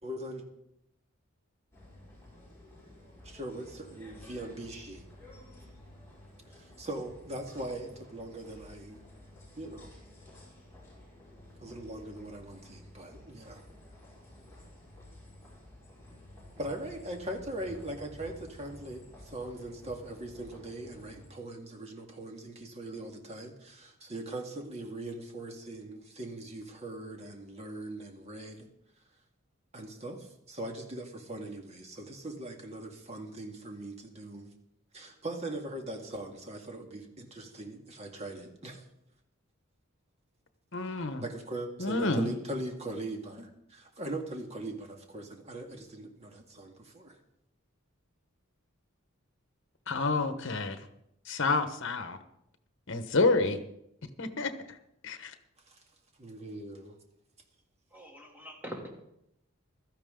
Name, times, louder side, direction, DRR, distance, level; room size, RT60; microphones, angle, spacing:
voice 1, 0.0-0.4 3.2-5.0 6.8-9.0 9.6-9.9 11.6-13.6 16.6-28.7 29.7-34.5 34.9-38.8 41.2-47.2 55.7-55.8 56.2-57.0, right 1 dB, 30° right, 3 dB, 2.0 m, -40 dB
sound 1, 1.7-21.3, left 1 dB, 10° left, 5.4 m, -52 dB
voice 2, 40.7-41.2 41.8-42.3 49.9-50.9 51.2-52.2 52.9-53.6 54.2-54.8 55.0-55.3, left 3 dB, 60° left, 9 dB, 1.2 m, -29 dB
voice 3, 57.9-58.9, equal, 10° right, -1 dB, 2.7 m, -43 dB
16.0 x 13.0 x 3.8 m, 0.80 s
head